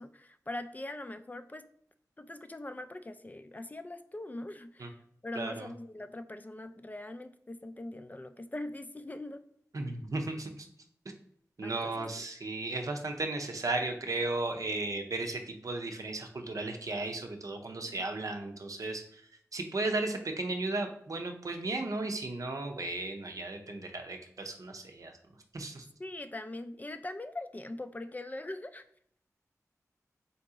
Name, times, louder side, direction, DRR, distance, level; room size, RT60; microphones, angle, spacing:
voice 1, 0.0-1.7 2.2-5.0 5.2-9.4 11.6-12.1 17.7-18.0 26.0-28.8, left 1 dB, 25° left, 9 dB, 0.4 m, -42 dB
voice 2, 5.4-5.7 9.7-10.5 11.6-19.2 19.5-25.1 25.5-25.8, right 2 dB, 65° right, 4 dB, 0.6 m, -35 dB
3.9 x 2.8 x 3.6 m, 0.66 s
cardioid pair, 45°, 6 cm